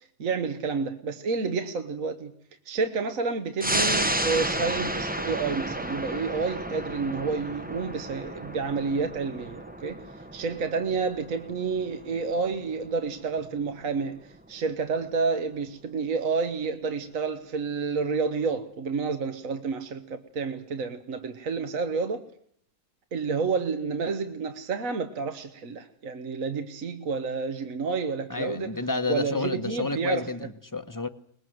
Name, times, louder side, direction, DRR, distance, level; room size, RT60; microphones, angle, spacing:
voice 1, 0.2-2.3 2.6-10.0 10.3-22.2 23.1-28.7 29.1-30.3, right 4 dB, 60° right, 1.5 m, -29 dB
sound 1, 3.6-14.6 15.0-15.1, right 1 dB, 10° right, 0.7 m, -32 dB
voice 2, 28.3-31.1, left 3 dB, 15° left, 1.0 m, -30 dB
22.5 x 20.5 x 7.8 m
omnidirectional pair, 1.6 m